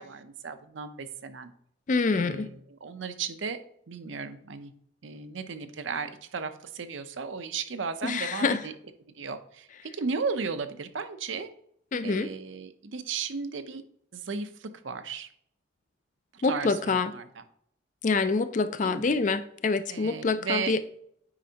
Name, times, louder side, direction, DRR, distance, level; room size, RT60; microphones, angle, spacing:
voice 1, 0.0-1.5 2.1-3.6 3.9-4.7 5.0-8.7 9.1-11.5 12.0-13.8 14.1-15.3 16.3-17.4 18.8-19.1 19.9-20.7, right 5 dB, 75° right, 9 dB, 0.6 m, -35 dB
voice 2, 1.9-2.5 8.0-8.6 11.9-12.3 16.4-17.1 18.0-20.8, left 4 dB, 40° left, 12 dB, 0.4 m, -26 dB
8.7 x 5.2 x 2.8 m, 0.70 s
head